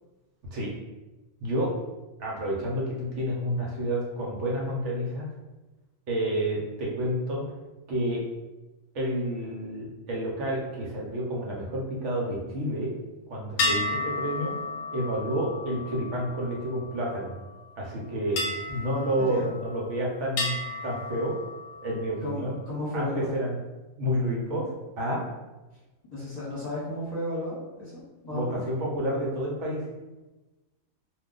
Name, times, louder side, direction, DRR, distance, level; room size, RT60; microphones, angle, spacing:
voice 1, 1.4-1.7 2.2-5.3 6.1-7.4 7.9-8.2 8.9-12.9 13.3-14.5 14.9-17.3 17.8-21.3 21.8-22.5 22.9-23.6 24.0-25.2 28.3-29.9, equal, 65° right, -3 dB, 0.9 m, -29 dB
sound 1, 13.6-17.3 18.4-19.9 20.4-22.0, left 2 dB, 70° left, 0.8 m, -33 dB
voice 2, 19.2-19.5 22.2-22.4 22.7-23.3 26.1-28.6, left 1 dB, 35° left, -9 dB, 1.0 m, -33 dB
2.3 x 2.2 x 3.7 m, 1.1 s
omnidirectional pair, 1.4 m